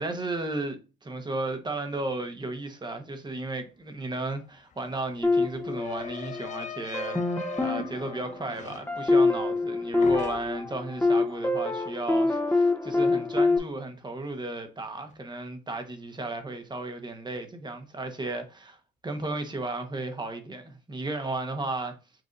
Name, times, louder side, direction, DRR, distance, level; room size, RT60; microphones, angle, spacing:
voice 1, 0.0-18.8 19.0-22.0, right 2 dB, 20° right, 1.1 m, -34 dB
sound 1, 4.1-4.2 4.5-9.7 10.0-10.8, left 8 dB, 40° left, 0.4 m, -42 dB
sound 2, 5.2-6.5 6.9-13.6, left 3 dB, 10° left, 0.9 m, -26 dB
7.6 x 2.6 x 2.5 m
cardioid pair, 90°, 20 cm